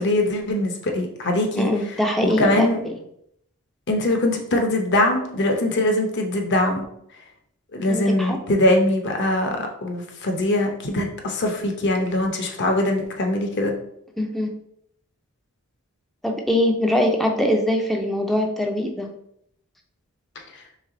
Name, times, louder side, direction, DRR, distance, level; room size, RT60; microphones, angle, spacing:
voice 1, 0.0-1.7 2.2-2.8 3.9-6.8 7.7-13.7, left 1 dB, 55° left, 3 dB, 0.7 m, -22 dB
voice 2, 1.6-2.9 7.9-8.4 14.2-14.6 16.2-19.1, left 1 dB, ahead, 2 dB, 0.4 m, -22 dB
3.3 x 3.1 x 3.7 m, 0.73 s
head